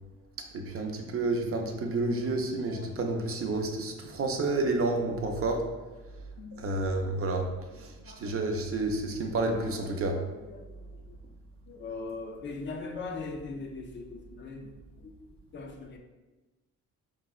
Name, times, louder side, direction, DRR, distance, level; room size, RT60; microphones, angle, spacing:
voice 1, 0.5-5.6 6.6-7.5 7.8-7.9 8.2-10.2, right 2 dB, 50° right, 3 dB, 0.5 m, -30 dB
voice 2, 2.1-2.9 4.1-4.2 6.4-6.7 8.0-8.8 9.5-11.2 11.7-14.7 15.0-15.1 15.5-16.0, left 3 dB, 40° left, 3 dB, 0.4 m, -42 dB
4.6 x 2.0 x 2.3 m, 1.2 s
cardioid pair, 90°, 30 cm